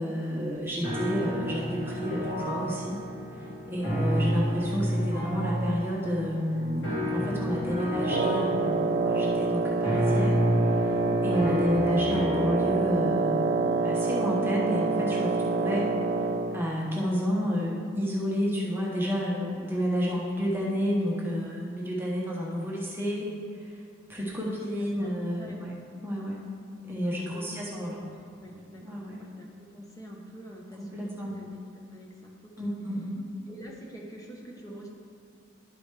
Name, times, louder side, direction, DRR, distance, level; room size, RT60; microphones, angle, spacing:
voice 1, 0.0-3.0 3.4-10.4 10.8-10.9 11.2-15.9 16.5-23.3 23.5-23.7 24.1-25.7 26.0-26.4 26.8-28.0 28.8-29.2 30.9-31.4 32.6-33.2, equal, 10° right, -4 dB, 0.9 m, -30 dB
sound 1, 0.8-12.8, equal, 60° left, 2.0 m, -30 dB
Wind instrument woodwind instrument, 8.1-16.6, right 4 dB, 55° right, 0.4 m, -27 dB
voice 2, 19.2-19.5 20.1-20.3 24.4-25.6 27.0-32.7 33.5-34.9, right 1 dB, 15° left, -1 dB, 0.8 m, -46 dB
11.5 x 4.9 x 3.3 m, 2.2 s
head